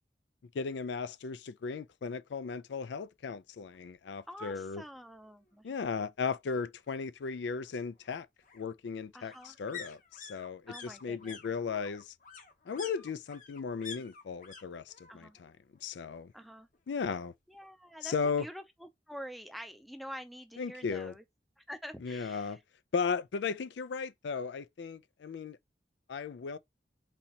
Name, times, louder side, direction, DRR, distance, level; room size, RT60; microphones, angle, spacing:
voice 1, 0.5-4.8 5.6-8.3 8.5-10.7 11.0-12.1 12.7-15.5 15.8-16.3 16.9-17.3 18.0-18.5 20.6-21.1 22.0-22.6 22.9-25.6 26.1-26.6, left 5 dB, 85° left, 0.4 m, -36 dB
sound 1, 3.7-3.8 4.2-4.3 4.6-5.6 6.8-14.6 14.9-15.5 15.7-16.8 17.1-17.2, left 6 dB, 45° left, 0.8 m, -50 dB
voice 2, 4.3-5.7 9.1-9.6 10.7-11.4 15.1-15.4 16.3-16.7 17.5-21.2 21.6-22.6, equal, ahead, 0.5 m, -47 dB
4.1 x 2.8 x 4.2 m
head